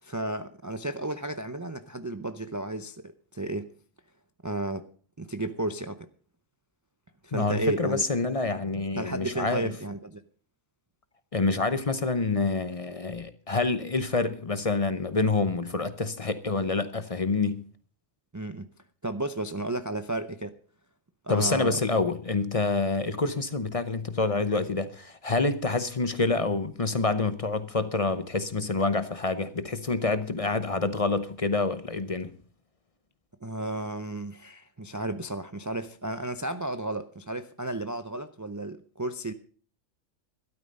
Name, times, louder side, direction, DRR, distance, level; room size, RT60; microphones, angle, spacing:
voice 1, 0.0-3.7 4.4-4.8 5.2-6.1 7.2-8.0 9.0-10.2 18.3-18.7 19.0-20.5 21.2-21.8 33.4-39.3, right 2 dB, 30° right, 0.3 m, -33 dB
voice 2, 7.3-9.7 11.3-17.6 21.3-32.3, left 3 dB, 30° left, 0.8 m, -27 dB
13.0 x 12.5 x 5.3 m
omnidirectional pair, 1.4 m